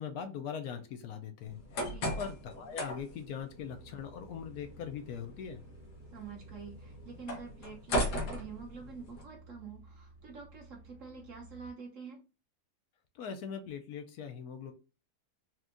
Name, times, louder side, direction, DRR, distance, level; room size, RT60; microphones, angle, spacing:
voice 1, 0.0-1.6 2.2-5.6 13.1-14.7, left 7 dB, 70° left, 6 dB, 1.1 m, -41 dB
sound 1, 1.5-9.2, equal, 90° left, 1.6 m, -39 dB
voice 2, 1.8-2.2 6.1-12.2, right 5 dB, 60° right, 2 dB, 1.1 m, -47 dB
sound 2, 3.6-11.7, right 2 dB, 25° right, 0.8 m, -55 dB
4.3 x 2.3 x 2.5 m, 0.31 s
omnidirectional pair, 1.7 m